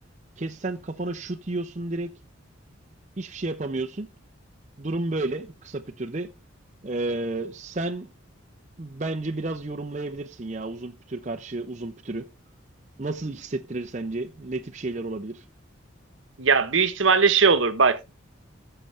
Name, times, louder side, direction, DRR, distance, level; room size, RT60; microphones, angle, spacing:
voice 1, 0.4-2.1 3.2-4.1 4.8-6.3 6.8-8.1 8.8-12.3 13.0-15.4, right 2 dB, 35° right, 0.7 m, -31 dB
voice 2, 16.4-18.1, right 5 dB, 65° right, 1.1 m, -20 dB
15.0 x 6.7 x 3.3 m
head